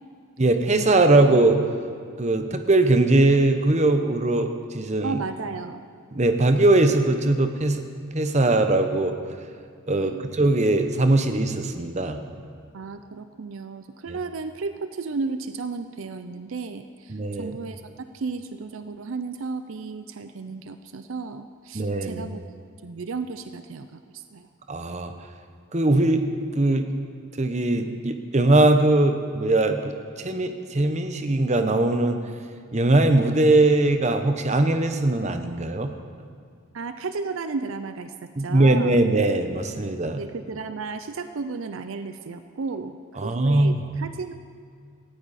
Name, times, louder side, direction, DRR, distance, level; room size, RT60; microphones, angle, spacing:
voice 1, 0.4-1.6 2.2-4.5 4.7-5.2 6.1-7.8 8.1-9.2 9.9-12.2 17.1-17.6 21.7-22.3 24.7-25.1 25.7-26.2 26.5-26.9 27.4-32.2 32.7-35.9 38.4-40.2 43.2-43.8, right 2 dB, 30° right, 7 dB, 0.9 m, -20 dB
voice 2, 5.0-5.9 9.9-10.4 12.7-22.4 22.8-24.5 36.7-39.0 40.2-44.3, right 4 dB, 70° right, 10 dB, 0.5 m, -34 dB
18.0 x 14.5 x 4.2 m, 2.2 s
head